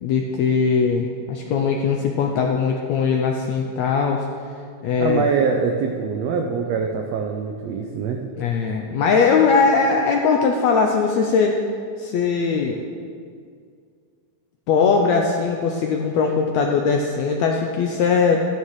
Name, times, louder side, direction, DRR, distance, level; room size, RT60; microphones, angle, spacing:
voice 1, 0.0-4.2 4.8-5.2 8.4-11.6 12.0-12.8 14.7-18.4, left 5 dB, 85° left, 2 dB, 1.6 m, -20 dB
voice 2, 5.0-8.2, right 5 dB, 85° right, 2 dB, 1.4 m, -23 dB
13.5 x 11.5 x 3.2 m, 2.2 s
omnidirectional pair, 3.8 m